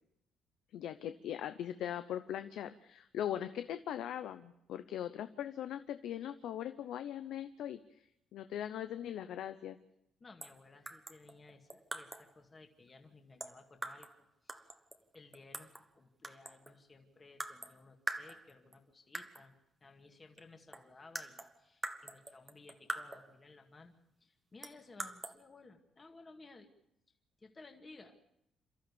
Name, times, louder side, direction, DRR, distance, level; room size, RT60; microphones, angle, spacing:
voice 1, 0.7-7.8 8.3-9.8, left 10 dB, 75° left, 10 dB, 0.8 m, -40 dB
voice 2, 10.2-14.7 15.1-19.6 19.8-24.0 24.2-26.7 27.4-28.2, left 3 dB, 25° left, 4 dB, 2.1 m, -58 dB
sound 1, 10.4-10.6 10.9-12.3 13.4-14.2 14.5-15.9 16.2-16.8 17.4-17.8 18.1-18.8 19.1-19.5 20.4-20.5 20.7-23.4 24.6-25.4, right 2 dB, 15° right, 1.2 m, -44 dB
28.5 x 13.5 x 6.9 m, 0.79 s
cardioid pair, 125°, 0 cm